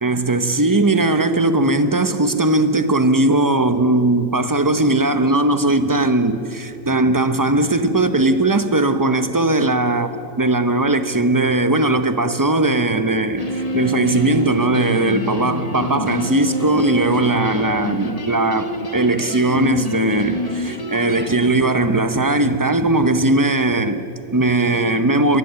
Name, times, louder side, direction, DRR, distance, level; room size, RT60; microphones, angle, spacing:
voice 1, 0.0-25.4, right 2 dB, 20° right, 0.6 m, -18 dB
sound 1, 13.4-21.4, left 1 dB, 25° left, 1.4 m, -27 dB
24.0 x 19.5 x 8.3 m
omnidirectional pair, 1.8 m